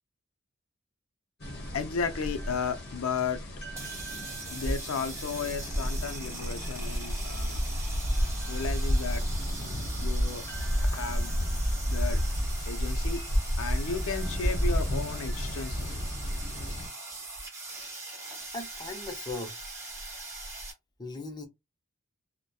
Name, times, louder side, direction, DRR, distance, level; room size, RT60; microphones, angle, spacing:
sound 1, 1.4-16.9, equal, 50° left, 0.9 m, -31 dB
voice 1, 1.7-3.4 4.5-7.6 8.5-9.2 10.0-10.4 10.8-11.5 11.9-12.2 12.7-13.2 13.6-16.0, left 5 dB, 80° left, 0.5 m, -34 dB
sound 2, 3.7-20.7, right 2 dB, 15° right, 0.8 m, -41 dB
voice 2, 18.5-19.5 21.0-21.5, left 2 dB, 20° left, 0.5 m, -38 dB
2.8 x 2.1 x 2.2 m
head